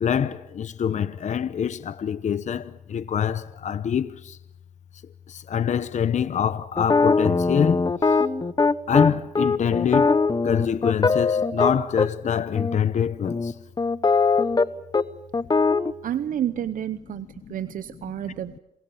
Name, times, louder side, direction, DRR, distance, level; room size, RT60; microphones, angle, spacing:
voice 1, 0.0-4.4 5.3-8.2 8.9-13.5 17.5-17.6, left 8 dB, 55° left, 0.8 m, -25 dB
sound 1, 6.8-12.1 12.6-12.8 13.3-14.7 14.9-15.0 15.3-15.9, left 4 dB, 30° left, 1.0 m, -21 dB
voice 2, 16.0-18.6, right 11 dB, 75° right, 0.8 m, -30 dB
27.5 x 21.5 x 7.1 m
cardioid pair, 65°, 14 cm